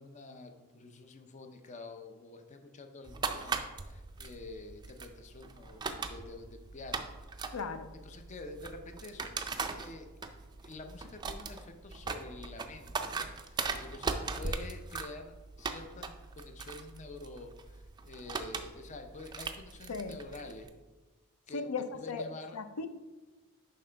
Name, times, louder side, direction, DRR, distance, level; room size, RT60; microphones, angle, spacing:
voice 1, 0.0-7.1 8.0-9.3 9.7-10.1 10.6-20.7 21.5-21.7 21.9-22.6, left 2 dB, 35° left, 6 dB, 0.5 m, -48 dB
sound 1, 3.1-20.7, right 4 dB, 20° right, 0.3 m, -40 dB
voice 2, 7.5-7.9 19.9-20.2 21.5-22.9, left 4 dB, 90° left, 10 dB, 0.5 m, -37 dB
7.5 x 5.4 x 3.3 m, 1.2 s
head